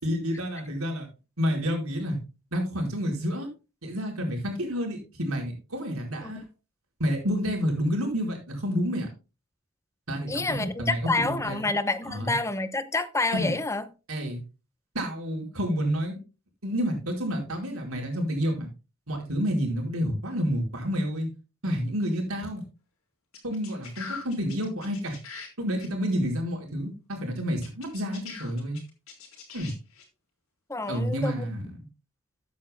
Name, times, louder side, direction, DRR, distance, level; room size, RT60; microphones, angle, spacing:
voice 1, 0.0-1.1 1.4-2.2 2.5-3.5 3.8-6.4 7.0-9.1 10.1-11.7 12.0-12.4 13.3-13.5 14.1-14.4 14.9-16.2 16.6-18.7 19.1-21.3 21.6-22.6 23.4-25.2 25.6-28.8 29.5-29.7 30.9-31.9, equal, 75° right, 4.6 m, -29 dB
voice 2, 10.3-13.9 30.7-31.4, left 3 dB, 15° left, 0.8 m, -28 dB
sound 1, 23.3-25.5 25.8-25.9 27.6-30.0, left 5 dB, 70° left, 3.8 m, -42 dB
14.0 x 9.5 x 2.2 m
head